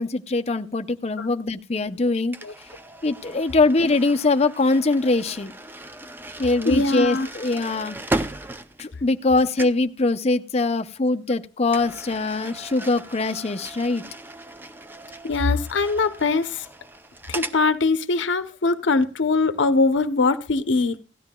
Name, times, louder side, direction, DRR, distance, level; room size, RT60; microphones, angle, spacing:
voice 1, 0.0-2.4 3.0-5.5 6.4-8.0 8.8-14.0, left 3 dB, 35° left, 0.6 m, -22 dB
sound 1, 2.3-9.3 9.6-9.9 11.7-17.6, right 2 dB, 10° right, 0.4 m, -36 dB
voice 2, 6.7-7.3 15.2-16.7 17.3-21.0, left 3 dB, 80° left, 0.7 m, -22 dB
17.0 x 12.5 x 2.2 m
head